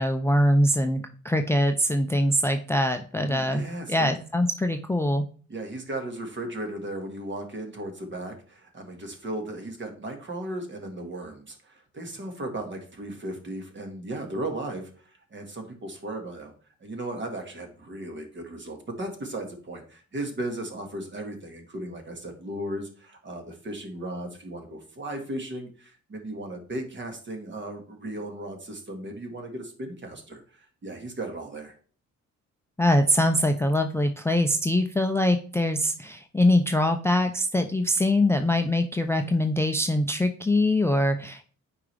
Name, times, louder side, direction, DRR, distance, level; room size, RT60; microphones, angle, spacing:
voice 1, 0.0-3.6 3.9-5.3 32.8-41.5, left 1 dB, 10° left, 6 dB, 0.5 m, -23 dB
voice 2, 3.2-4.1 5.5-16.5 16.8-31.7, right 1 dB, 40° right, 4 dB, 1.9 m, -36 dB
8.4 x 4.9 x 3.4 m, 0.42 s
cardioid pair, 90°, 30 cm